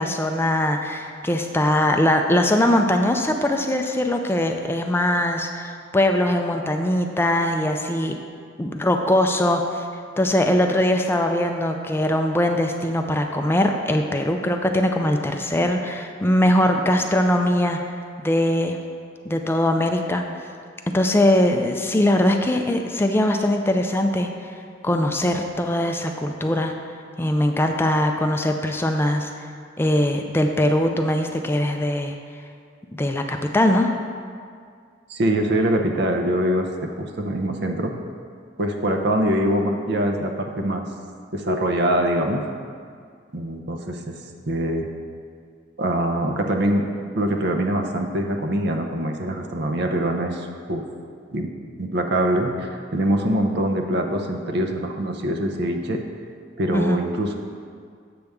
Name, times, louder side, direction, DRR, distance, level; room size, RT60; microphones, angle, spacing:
voice 1, 0.0-8.2 8.6-9.9 10.2-18.0 18.2-18.8 19.3-20.2 20.9-26.7 27.2-29.5 29.8-32.1 32.9-33.9 56.7-57.0, left 1 dB, 10° left, 4 dB, 0.3 m, -21 dB
voice 2, 35.1-37.9 38.6-40.8 41.3-42.4 43.3-44.2 44.5-44.9 45.8-46.8 47.2-50.8 51.3-51.5 51.8-56.0 56.6-57.4, right 1 dB, 60° right, 4 dB, 0.7 m, -23 dB
7.8 x 6.7 x 3.5 m, 2.1 s
head